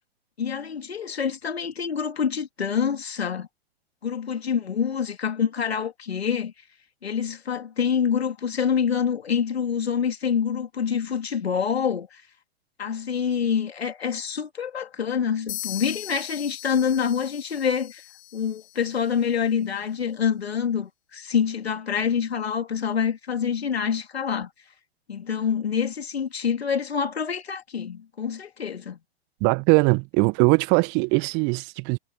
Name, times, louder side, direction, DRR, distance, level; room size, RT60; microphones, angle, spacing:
voice 1, 0.4-3.5 4.0-6.5 7.0-12.2 12.8-18.0 18.3-24.5 25.1-29.0, left 7 dB, 70° left, 2.9 m, -26 dB
sound 1, 15.5-19.2, left 20 dB, 40° left, 1.9 m, -39 dB
voice 2, 29.4-32.0, right 33 dB, 35° right, 1.4 m, -21 dB
figure-of-eight pair, 105°, 32 cm